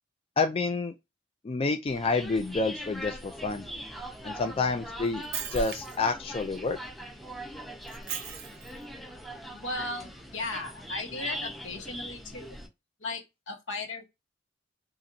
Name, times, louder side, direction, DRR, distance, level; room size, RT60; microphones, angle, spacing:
voice 1, 0.4-0.9 1.4-3.7 4.2-5.2 5.5-6.8, left 3 dB, 30° left, 0.3 m, -28 dB
sound 1, 1.9-12.7, equal, ahead, 0.7 m, -41 dB
Shatter, 5.0-6.1 7.9-8.8, right 9 dB, 60° right, 0.6 m, -38 dB
voice 2, 9.5-12.6 13.0-14.1, left 2 dB, 75° left, 1.1 m, -36 dB
4.0 x 2.5 x 2.6 m
head